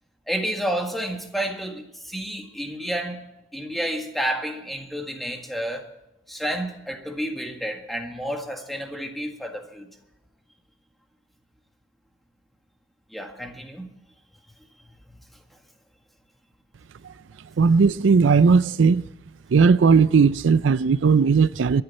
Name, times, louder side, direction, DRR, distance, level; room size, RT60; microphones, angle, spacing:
voice 1, 0.3-3.2 3.5-5.9 6.3-9.9 13.1-13.9 15.1-15.2, equal, ahead, 1.8 m, -30 dB
voice 2, 17.6-19.0 19.5-21.8, right 5 dB, 85° right, 0.4 m, -17 dB
23.0 x 10.5 x 4.3 m
head